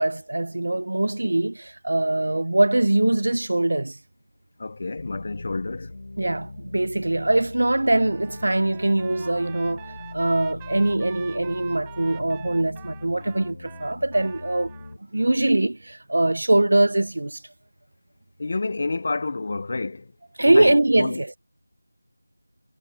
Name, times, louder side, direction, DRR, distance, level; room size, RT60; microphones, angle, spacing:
voice 1, 0.0-4.0 6.2-14.7 15.1-17.4 20.4-21.3, right 2 dB, 65° right, 0.6 m, -22 dB
voice 2, 4.6-5.9 18.4-20.1 20.5-21.4, left 3 dB, 35° left, 0.5 m, -29 dB
sound 1, 5.0-15.0, left 2 dB, 55° left, 3.4 m, -41 dB
Trumpet, 8.1-14.9, right 15 dB, 10° right, 6.3 m, -47 dB
figure-of-eight pair, 175°, 0 cm